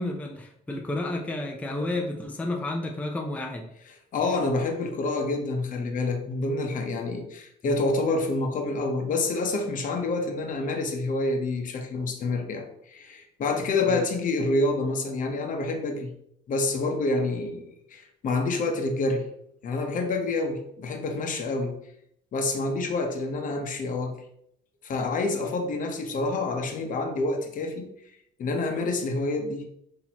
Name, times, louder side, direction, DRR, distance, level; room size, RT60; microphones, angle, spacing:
voice 1, 0.0-3.7 7.6-7.8 13.9-14.0 26.2-26.3, left 2 dB, 10° left, 1 dB, 0.5 m, -31 dB
voice 2, 4.1-16.1 16.5-19.3 19.6-21.8 22.3-24.2 24.8-27.9 28.4-29.6, left 2 dB, 50° left, 4 dB, 0.9 m, -28 dB
6.0 x 2.8 x 2.9 m, 0.73 s
cardioid pair, 110°, 17 cm